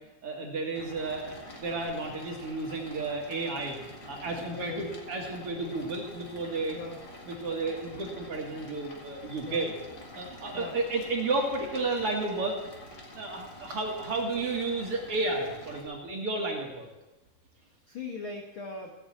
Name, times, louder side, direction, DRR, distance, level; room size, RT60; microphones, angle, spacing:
voice 1, 0.2-3.8 4.1-6.8 7.3-9.7 10.1-12.6 13.1-16.9, right 3 dB, 50° right, 0 dB, 2.0 m, -32 dB
sound 1, 0.7-15.8, left 1 dB, 35° left, 2.0 m, -47 dB
voice 2, 4.5-4.9 6.7-7.0 9.4-9.6 10.5-10.7 17.9-18.9, left 4 dB, 75° left, 2 dB, 1.1 m, -39 dB
16.5 x 7.2 x 8.4 m, 1.1 s
omnidirectional pair, 4.3 m